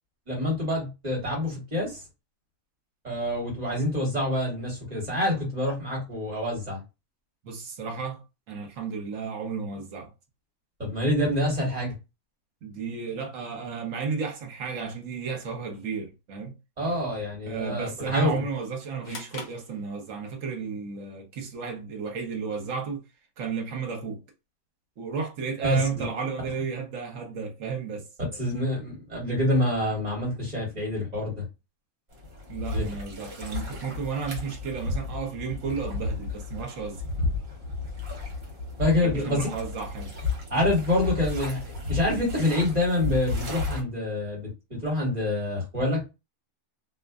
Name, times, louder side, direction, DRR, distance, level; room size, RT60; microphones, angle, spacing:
voice 1, 0.3-2.0 3.0-6.8 10.8-11.9 16.8-18.3 25.6-26.1 28.4-31.4 32.7-32.9 38.8-39.5 40.5-46.0, left 1 dB, 30° right, 1.4 m, -27 dB
voice 2, 7.4-10.1 12.6-16.5 17.5-23.0 23.4-24.2 25.0-28.1 32.5-37.0 38.9-40.1, right 5 dB, 65° right, 1.1 m, -33 dB
sound 1, 19.0-20.5, left 4 dB, 50° left, 0.8 m, -43 dB
sound 2, 32.1-43.8, left 3 dB, 50° right, 1.2 m, -33 dB
2.6 x 2.4 x 2.3 m
omnidirectional pair, 1.5 m